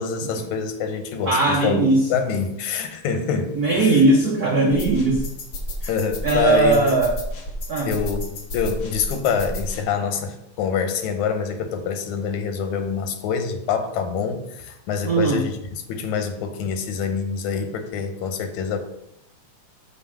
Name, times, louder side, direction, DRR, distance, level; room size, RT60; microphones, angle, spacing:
voice 1, 0.0-3.9 5.9-6.8 7.9-15.5 15.9-18.8, left 6 dB, 90° left, 7 dB, 2.2 m, -26 dB
voice 2, 1.3-2.1 3.5-5.2 5.8-5.9 6.2-7.1 7.7-7.9 15.0-15.4, right 2 dB, 75° right, -1 dB, 0.8 m, -19 dB
sound 1, 4.7-9.8, equal, 60° left, 1.1 m, -31 dB
7.2 x 4.4 x 5.9 m, 0.81 s
omnidirectional pair, 3.3 m